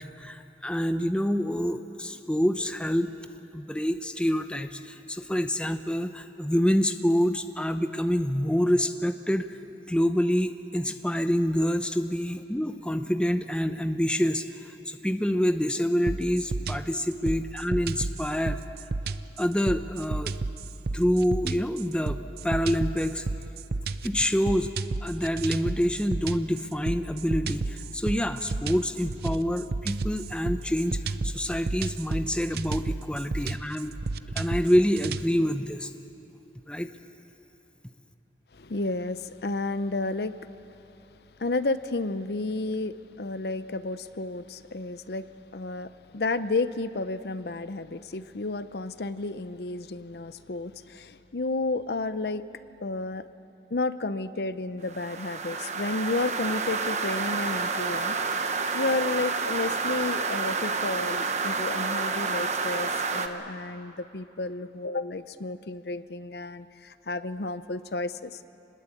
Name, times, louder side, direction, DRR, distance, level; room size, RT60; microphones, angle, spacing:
voice 1, 0.0-3.1 3.5-9.5 9.9-18.6 19.4-20.3 20.9-23.2 24.0-24.7 25.0-33.9 34.3-35.9 36.7-36.9, equal, 5° left, 8 dB, 0.7 m, -27 dB
sound 1, 16.1-35.3, right 3 dB, 60° right, 0.6 m, -32 dB
voice 2, 38.5-40.5 41.4-45.3 45.5-52.4 52.8-53.2 53.7-58.2 58.7-68.4, left 2 dB, 65° left, 13 dB, 0.7 m, -31 dB
sound 2, 54.9-63.3, right 4 dB, 40° right, 1.1 m, -29 dB
26.0 x 20.5 x 8.6 m, 3.0 s
head